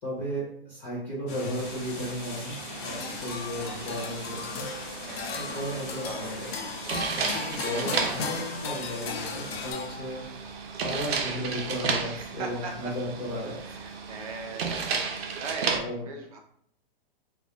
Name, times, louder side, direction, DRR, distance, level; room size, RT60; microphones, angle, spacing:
voice 1, 0.0-4.6 5.3-6.5 7.0-10.4 10.8-13.8 15.7-16.0, equal, 20° left, -6 dB, 0.4 m, -35 dB
sound 1, 1.3-9.7, left 3 dB, 55° left, 0.7 m, -42 dB
sound 2, 1.6-15.8, right 5 dB, 90° right, 0.5 m, -34 dB
sound 3, 2.7-10.4, left 5 dB, 90° left, 0.5 m, -37 dB
voice 2, 2.8-3.2 5.0-5.4 5.7-6.4 6.8-7.1 12.0-12.9 13.6-15.0 15.4-16.4, right 4 dB, 40° right, 2 dB, 0.5 m, -40 dB
2.2 x 2.1 x 2.7 m, 0.69 s
hypercardioid pair, 150°, 30 cm